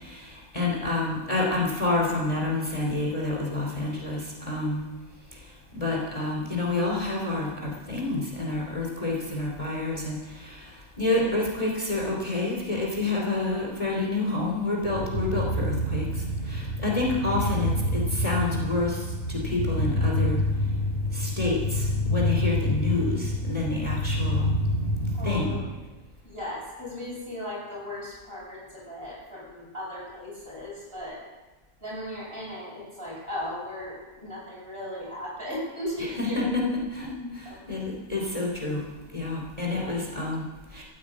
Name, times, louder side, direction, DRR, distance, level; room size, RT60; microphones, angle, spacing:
voice 1, 0.0-4.8 5.3-20.7 21.1-24.5 25.2-25.6 36.0-38.9 39.1-40.8, left 2 dB, 25° left, -2 dB, 3.0 m, -29 dB
sound 1, 14.8-25.7, left 1 dB, 45° left, 1.8 m, -27 dB
voice 2, 25.1-25.6 26.2-31.2 31.8-36.7 37.2-37.6 39.7-39.9, left 1 dB, 40° right, -5 dB, 7.3 m, -37 dB
14.5 x 9.5 x 8.5 m, 1.2 s
omnidirectional pair, 1.5 m